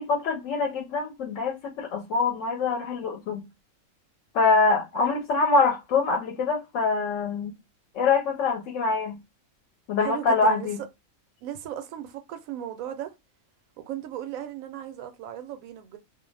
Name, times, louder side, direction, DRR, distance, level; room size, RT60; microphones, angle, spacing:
voice 1, 0.0-3.4 4.3-7.6 7.9-9.2 9.9-10.8, left 4 dB, 70° left, 0.9 m, -24 dB
voice 2, 10.0-10.7 11.4-13.1 13.8-16.0, right 11 dB, 80° right, 1.0 m, -36 dB
2.5 x 2.0 x 3.1 m
omnidirectional pair, 1.4 m